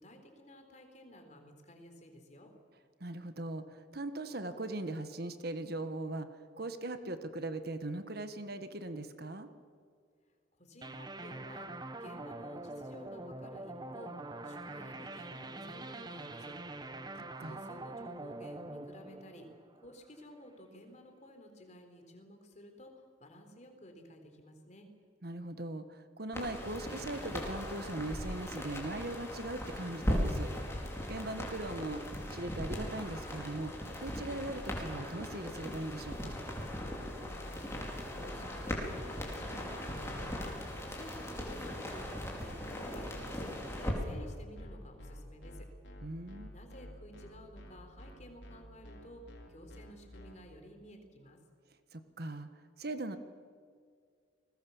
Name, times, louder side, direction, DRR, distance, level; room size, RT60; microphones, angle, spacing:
voice 1, 0.0-2.5 10.6-16.5 17.3-19.5 19.8-24.9 37.3-37.6 37.9-45.7 46.5-49.2 49.5-51.4, equal, 40° left, 5 dB, 3.9 m, -53 dB
voice 2, 3.0-6.3 6.6-9.5 17.4-17.6 25.2-30.5 31.1-32.0 32.3-36.3 46.0-46.5 51.9-52.5 52.8-53.2, right 2 dB, 55° right, 9 dB, 1.4 m, -40 dB
sound 1, 10.8-20.2, right 2 dB, 20° right, 1.1 m, -44 dB
sound 2, 26.3-43.9, left 1 dB, 15° left, 4.7 m, -39 dB
sound 3, 36.8-50.3, equal, 70° left, 4.7 m, -49 dB
29.5 x 20.5 x 7.2 m, 2.1 s
head